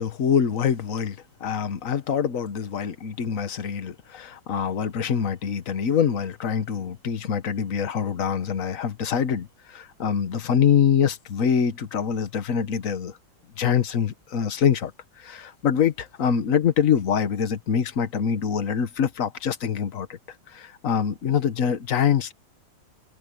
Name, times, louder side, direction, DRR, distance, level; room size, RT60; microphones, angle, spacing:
voice 1, 0.0-13.1 13.6-14.9 15.2-20.1 20.5-22.3, left 7 dB, 45° left, 1.5 m, -24 dB
omnidirectional pair, 2.1 m